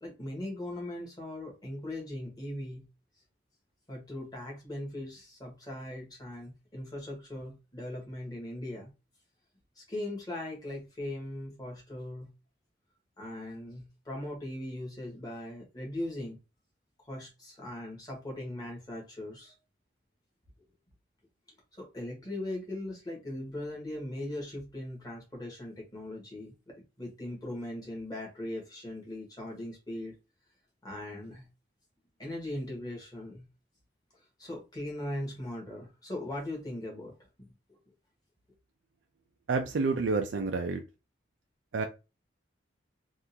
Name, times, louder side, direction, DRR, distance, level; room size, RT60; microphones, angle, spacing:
voice 1, 0.0-2.9 3.9-8.9 9.8-12.3 13.2-16.4 17.1-19.5 21.8-30.1 30.8-31.5 32.2-33.5 34.4-37.1 37.7-37.8, left 1 dB, 20° left, 1.4 m, -39 dB
voice 2, 39.5-40.8 41.7-41.9, right 4 dB, 85° right, 0.5 m, -29 dB
3.6 x 2.5 x 2.8 m
head